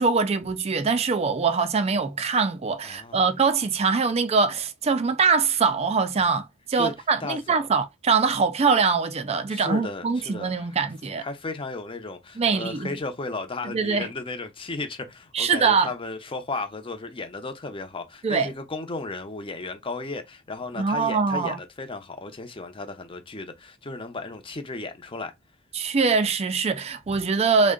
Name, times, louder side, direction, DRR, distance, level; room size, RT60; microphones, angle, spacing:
voice 1, 0.0-11.2 12.4-12.9 13.6-14.1 15.3-15.9 18.2-18.5 20.7-21.6 25.7-27.7, right 5 dB, 30° right, 0.4 m, -23 dB
voice 2, 2.8-3.2 6.8-6.9 7.2-7.4 9.5-10.7 11.2-25.3 27.1-27.2, left 3 dB, 25° left, 0.6 m, -34 dB
3.6 x 2.1 x 3.7 m
head